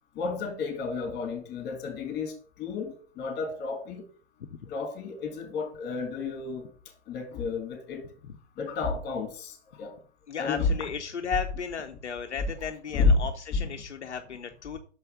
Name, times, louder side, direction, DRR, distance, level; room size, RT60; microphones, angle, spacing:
voice 1, 0.1-4.0 4.6-6.7 7.1-8.0 8.6-9.9 10.4-10.9 12.9-13.2 13.5-13.7, left 4 dB, 30° left, 4 dB, 3.2 m, -30 dB
voice 2, 10.3-14.8, left 6 dB, 75° left, 5 dB, 0.9 m, -35 dB
6.5 x 5.5 x 6.6 m, 0.43 s
figure-of-eight pair, 105°, 34 cm